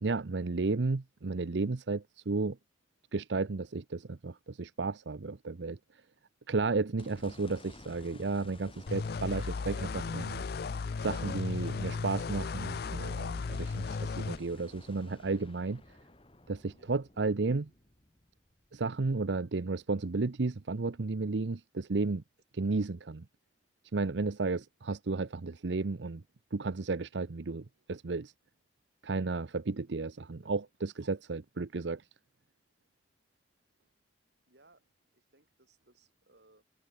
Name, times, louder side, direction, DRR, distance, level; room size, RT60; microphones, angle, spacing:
voice 1, 0.0-2.5 3.1-5.8 6.5-10.4 11.0-15.8 16.5-17.7 18.7-22.2 22.5-23.2 23.9-26.2 26.5-28.3 29.0-32.0, right 3 dB, 90° right, 0.7 m, -33 dB
sound 1, 7.0-19.3 19.8-19.9 23.2-23.3, left 2 dB, 30° left, 3.0 m, -54 dB
sound 2, 8.9-14.4, left 4 dB, 60° left, 0.5 m, -35 dB
voice 2, 30.2-30.6 30.9-31.2 34.5-34.8 35.1-36.6, right 2 dB, 70° right, 7.4 m, -64 dB
head